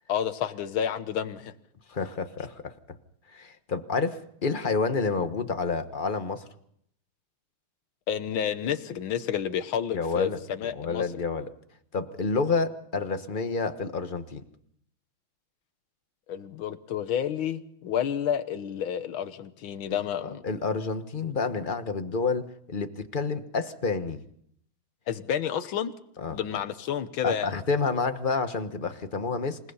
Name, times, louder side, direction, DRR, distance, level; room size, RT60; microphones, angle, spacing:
voice 1, 0.1-1.5 8.1-11.0 16.3-20.4 25.1-25.9 26.3-27.5, left 9 dB, 75° left, 11 dB, 1.9 m, -30 dB
voice 2, 1.9-2.7 3.3-6.5 9.9-10.4 10.7-11.5 11.9-14.4 19.9-24.2 26.2-26.4 27.2-29.6, left 4 dB, 30° left, 9 dB, 1.1 m, -29 dB
28.0 x 18.0 x 5.6 m, 0.69 s
omnidirectional pair, 2.3 m